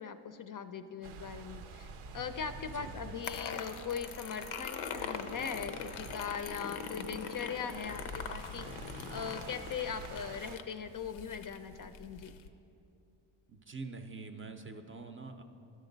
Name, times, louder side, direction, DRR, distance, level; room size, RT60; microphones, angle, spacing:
voice 1, 0.0-1.9 2.1-8.8 9.1-12.3, left 6 dB, 45° left, 9 dB, 0.5 m, -40 dB
sound 1, 1.0-10.6, right 4 dB, 90° right, 0.6 m, -48 dB
sound 2, 3.2-12.5, left 7 dB, 85° left, 0.6 m, -42 dB
voice 2, 13.5-15.4, right 3 dB, 25° right, 6 dB, 0.5 m, -45 dB
11.5 x 6.2 x 3.9 m, 2.6 s
cardioid pair, 75°, 48 cm